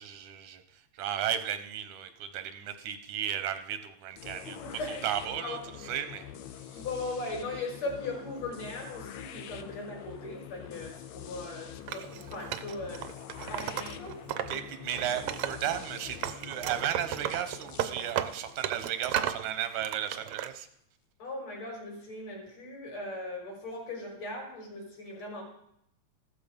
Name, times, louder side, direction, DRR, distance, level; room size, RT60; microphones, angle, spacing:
voice 1, 0.0-4.6 4.9-6.2 6.7-6.8 14.5-20.7, right 10 dB, 90° right, 9 dB, 2.5 m, -35 dB
sound 1, 4.2-20.0, left 10 dB, 80° left, 2.2 m, -45 dB
voice 2, 4.4-5.0 5.4-5.6 6.7-13.0 13.5-14.2 21.2-25.4, left 2 dB, 60° left, -1 dB, 6.6 m, -39 dB
Wood, 11.9-14.6 14.9-15.9 16.2-19.4 19.8-20.5, right 11 dB, 70° right, 1.4 m, -34 dB
15.0 x 13.0 x 5.3 m, 0.75 s
omnidirectional pair, 3.3 m